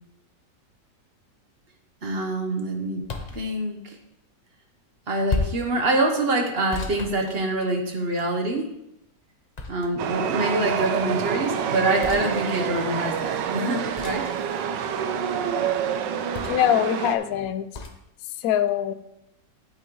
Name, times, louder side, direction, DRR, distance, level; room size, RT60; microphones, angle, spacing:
voice 1, 2.0-3.1 3.3-4.0 5.1-8.7 9.7-14.3, right 2 dB, 40° right, 3 dB, 1.1 m, -25 dB
sound 1, 3.0-3.4 5.3-5.7 6.7-7.9 9.5-10.1 12.0-12.3 13.9-14.3 16.3-16.7 17.7-18.0, left 3 dB, 40° left, 0.6 m, -32 dB
Chatter / Subway metro underground, 10.0-17.2, right 8 dB, 85° right, 1.3 m, -27 dB
voice 2, 16.4-17.7 18.4-18.9, left 11 dB, 70° left, 11 dB, 0.9 m, -23 dB
8.9 x 8.8 x 3.1 m, 0.82 s
omnidirectional pair, 1.9 m